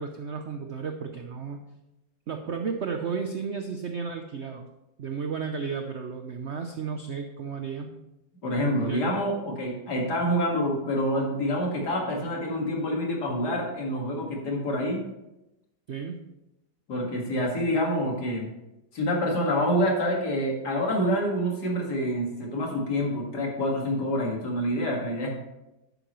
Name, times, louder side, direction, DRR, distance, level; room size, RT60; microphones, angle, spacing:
voice 1, 0.0-1.6 2.3-4.7 5.0-8.0 8.8-9.1 15.9-16.2, right 5 dB, 75° right, 5 dB, 0.6 m, -33 dB
voice 2, 8.4-15.0 16.9-18.5 18.9-25.3, equal, 60° left, -1 dB, 2.5 m, -27 dB
11.0 x 9.1 x 3.1 m, 0.93 s
omnidirectional pair, 2.1 m